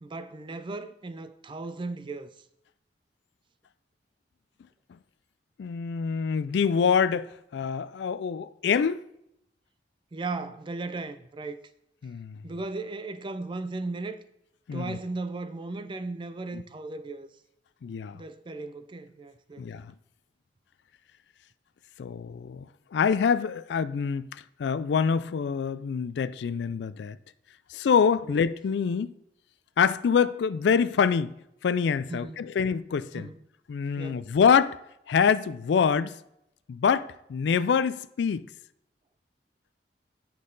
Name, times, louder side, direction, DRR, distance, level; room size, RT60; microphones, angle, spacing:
voice 1, 0.0-2.3 10.1-11.6 12.4-14.2 14.7-17.3 18.1-19.8 28.2-28.3 32.1-32.4 33.1-33.4 34.0-34.3, right 3 dB, 30° right, 0.4 m, -36 dB
voice 2, 5.6-9.0 12.0-12.4 14.7-15.0 17.8-18.2 19.6-19.9 22.0-22.7 22.9-24.3 24.6-27.2 27.7-29.1 29.8-31.3 31.6-33.3 33.7-34.8 35.1-36.2 36.7-38.4, left 6 dB, 70° left, 0.3 m, -25 dB
8.6 x 5.5 x 3.9 m
head